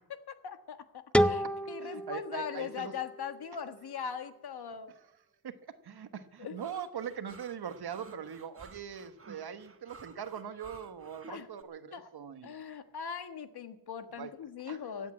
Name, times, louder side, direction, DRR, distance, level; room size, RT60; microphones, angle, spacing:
voice 1, 0.4-4.9 6.4-6.6 11.3-11.5 11.9-12.1 12.4-15.1, left 7 dB, 75° left, 9 dB, 1.5 m, -40 dB
sound 1, 1.1-4.0, equal, 5° left, 0.6 m, -31 dB
voice 2, 1.2-1.5 1.8-2.9 4.9-5.1 5.4-12.6 14.2-14.3 14.7-14.8, right 8 dB, 75° right, 11 dB, 1.3 m, -42 dB
sound 2, 6.6-11.6, right 5 dB, 35° right, 1.3 m, -53 dB
16.0 x 8.4 x 9.7 m, 0.80 s
wide cardioid pair, 105°, 39 cm